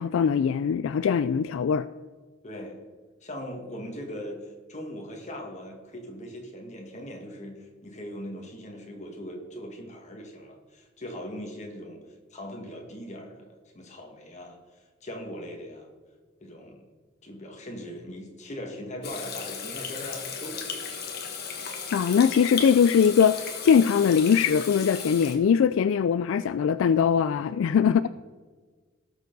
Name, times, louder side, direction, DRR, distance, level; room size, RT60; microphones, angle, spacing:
voice 1, 0.0-1.9 21.9-28.1, left 7 dB, 75° left, 13 dB, 0.3 m, -21 dB
voice 2, 2.4-2.8 3.2-12.0 12.3-15.9 16.4-16.8 17.2-20.9 27.9-28.1, equal, 35° left, 1 dB, 2.0 m, -40 dB
Water tap faucet / Sink (filling or washing), 19.0-25.3, left 6 dB, 55° left, 1.6 m, -35 dB
17.5 x 6.8 x 4.0 m, 1.4 s
head